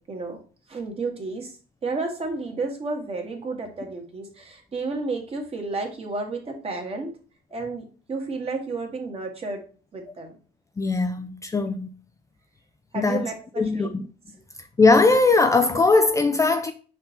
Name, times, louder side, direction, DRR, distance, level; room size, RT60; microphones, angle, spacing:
voice 1, 0.1-0.4 0.7-1.6 1.8-7.1 7.5-9.6 9.9-10.3 12.9-13.9, right 3 dB, 35° right, 1.8 m, -31 dB
voice 2, 10.8-11.9 12.9-13.3 13.6-13.9 14.8-16.7, left 3 dB, 20° left, 0.4 m, -19 dB
5.5 x 4.5 x 3.9 m
cardioid pair, 110°, 17 cm